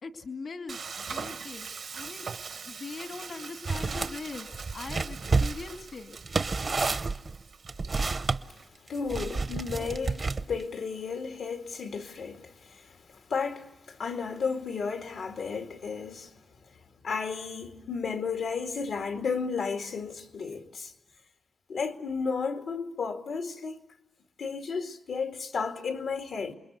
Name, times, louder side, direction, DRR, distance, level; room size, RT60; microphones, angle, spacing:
voice 1, 0.0-2.3 2.6-6.2, left 4 dB, 70° left, 2.4 m, -41 dB
Frying (food), 0.7-8.7, right 5 dB, 80° right, 1.5 m, -42 dB
sound 1, 3.7-4.1 4.5-8.4 9.1-10.6, right 4 dB, 50° right, 0.9 m, -29 dB
voice 2, 8.9-16.3 17.0-20.9 21.7-23.8 24.4-26.5, left 5 dB, 90° left, 2.2 m, -33 dB
28.5 x 21.0 x 8.0 m
cardioid pair, 65°, 0 cm